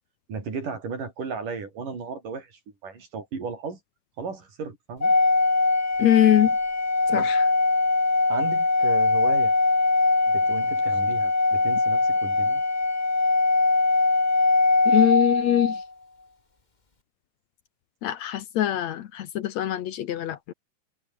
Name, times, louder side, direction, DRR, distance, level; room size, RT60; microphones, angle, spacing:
voice 1, 0.3-3.8 4.2-5.2 7.1-7.4 8.3-9.5 10.3-12.6, right 5 dB, 75° right, 6.8 m, -35 dB
Organ, 5.0-15.9, left 3 dB, 20° left, 1.4 m, -22 dB
voice 2, 6.0-6.5 7.1-7.4 14.9-15.8 18.0-20.5, left 12 dB, 65° left, 2.1 m, -23 dB
omnidirectional pair, 3.7 m